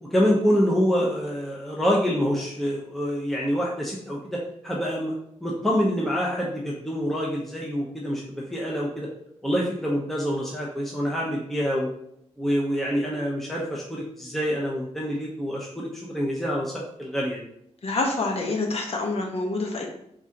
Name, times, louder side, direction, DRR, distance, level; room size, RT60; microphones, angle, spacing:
voice 1, 0.0-5.1 5.4-9.1 9.4-11.9 12.4-17.4, equal, ahead, -4 dB, 0.8 m, -26 dB
voice 2, 17.8-19.9, left 2 dB, 60° left, 0 dB, 1.0 m, -27 dB
4.8 x 3.7 x 2.8 m, 0.74 s
cardioid pair, 85°, 12 cm